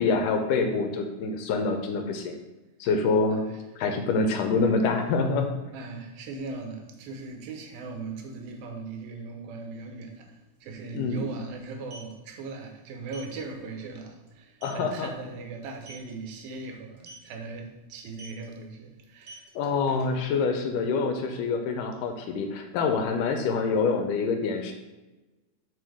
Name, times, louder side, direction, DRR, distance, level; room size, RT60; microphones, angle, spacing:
voice 1, 0.0-2.4 2.8-3.4 3.8-5.5 10.9-11.2 14.6-15.1 19.6-24.7, left 4 dB, 75° left, 5 dB, 2.1 m, -26 dB
voice 2, 3.3-3.6 5.7-19.8, right 3 dB, 85° right, 4 dB, 2.7 m, -39 dB
sound 1, 10.1-10.2 10.4-10.6 11.6-12.1 13.1-13.3 13.8-13.9 14.3-14.4 14.6-14.9 15.7-16.1 17.0-17.3 18.1-18.4 19.1-20.4, right 1 dB, 45° right, 1.0 m, -46 dB
6.1 x 4.9 x 4.9 m, 1.1 s
omnidirectional pair, 4.0 m